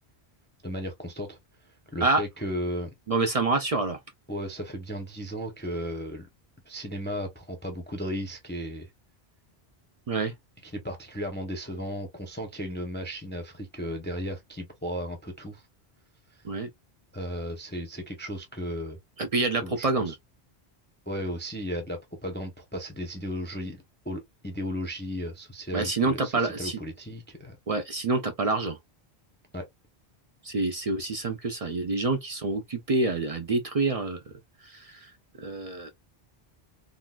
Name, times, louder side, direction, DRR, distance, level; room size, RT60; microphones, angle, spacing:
voice 1, 0.6-2.9 4.3-6.3 6.6-8.9 10.6-15.7 16.3-16.4 17.1-19.0 19.6-20.1 21.1-27.6 29.5-29.7, equal, 15° left, 0.5 m, -35 dB
voice 2, 3.1-4.0 10.1-10.3 16.4-16.7 19.2-20.1 25.7-26.8 27.7-28.8 30.4-34.2 34.6-35.1 35.4-35.9, right 3 dB, 55° right, 0.4 m, -27 dB
3.8 x 2.3 x 2.2 m
omnidirectional pair, 1.1 m